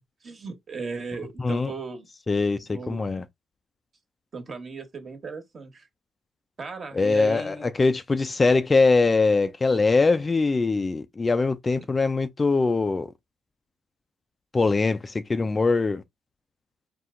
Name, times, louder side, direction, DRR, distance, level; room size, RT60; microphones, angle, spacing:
voice 1, 0.2-2.1 2.7-3.2 4.3-5.9 6.6-7.7 11.7-11.9, right 4 dB, 40° right, 1.3 m, -37 dB
voice 2, 1.4-1.7 2.3-3.2 6.9-13.1 14.5-16.0, left 3 dB, 25° left, 0.4 m, -22 dB
4.3 x 2.2 x 3.7 m
cardioid pair, 90°, 0 cm